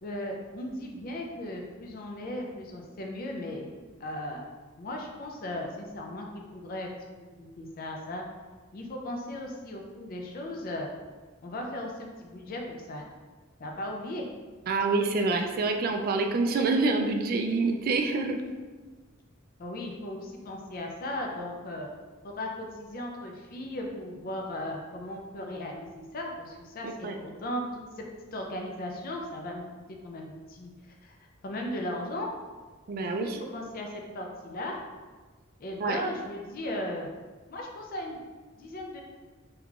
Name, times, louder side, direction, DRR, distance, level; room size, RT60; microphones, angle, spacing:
voice 1, 0.0-3.7 4.0-4.5 4.8-6.9 7.3-8.2 8.7-10.9 11.4-13.0 13.6-14.3 19.6-21.9 22.2-28.1 28.3-29.6 30.0-30.7 31.0-31.2 31.4-32.3 33.0-34.8 35.6-37.1 37.5-38.2 38.6-39.0, left 1 dB, 45° left, 1 dB, 0.4 m, -37 dB
voice 2, 14.7-18.4 27.0-27.2 32.9-33.4 35.8-36.0, right 3 dB, 45° right, 5 dB, 0.3 m, -26 dB
3.6 x 2.9 x 2.4 m, 1.3 s
head